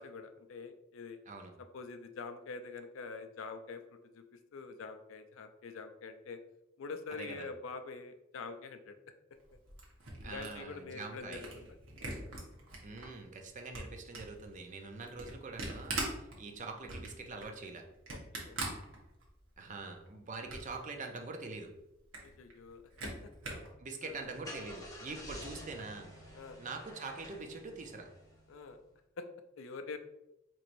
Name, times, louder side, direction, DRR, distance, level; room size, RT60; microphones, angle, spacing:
voice 1, 0.0-1.2 1.7-4.2 4.5-6.4 6.8-9.0 10.2-11.7 18.1-18.8 22.2-23.1 24.0-24.2 26.3-26.6 28.5-28.8 29.2-29.3 29.6-30.0, left 4 dB, 75° left, 8 dB, 0.4 m, -45 dB
voice 2, 7.2-7.5 10.2-11.4 12.8-17.9 19.6-21.7 23.8-28.1, right 3 dB, 40° right, 4 dB, 0.5 m, -44 dB
Camera, 9.4-13.1 13.5-19.5 19.9-20.8 21.2-21.3 21.5-21.6 21.9-23.7, right 2 dB, 75° right, 1.0 m, -43 dB
Car / Engine starting, 24.1-28.7, left 1 dB, 20° left, 0.8 m, -50 dB
4.4 x 3.0 x 2.6 m, 0.90 s
head